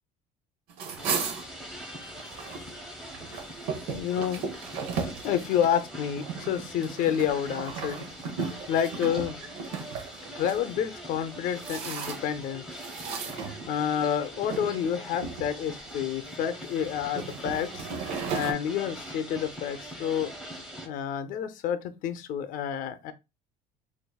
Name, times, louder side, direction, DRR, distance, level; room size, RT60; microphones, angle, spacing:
sound 1, 0.7-2.6 3.0-10.6 11.2-12.4 12.8-14.0 14.5-14.7 15.1-15.9 16.5-18.5, right 5 dB, 80° right, 0.8 m, -35 dB
sound 2, 1.0-20.9, equal, 5° right, 0.9 m, -43 dB
voice 1, 3.9-4.4 5.2-8.1 8.7-9.4 10.4-12.6 13.1-13.2 13.7-20.3 20.8-23.1, left 9 dB, 55° left, 0.5 m, -29 dB
4.6 x 2.6 x 2.3 m
cardioid pair, 135°, 16 cm